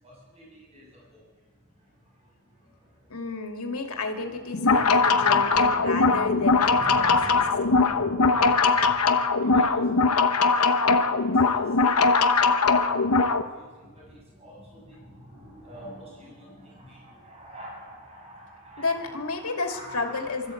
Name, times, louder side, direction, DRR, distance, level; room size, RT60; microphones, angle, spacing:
voice 1, 0.0-1.2 2.0-2.1 2.6-2.9 4.2-4.4 4.6-11.9 12.4-20.5, equal, 30° right, -5 dB, 7.4 m, -45 dB
voice 2, 3.1-7.4 18.8-20.5, left 3 dB, 70° left, 3 dB, 2.6 m, -31 dB
sound 1, 4.5-13.4, left 4 dB, 85° left, 1.0 m, -21 dB
24.5 x 13.5 x 8.0 m, 1.5 s
head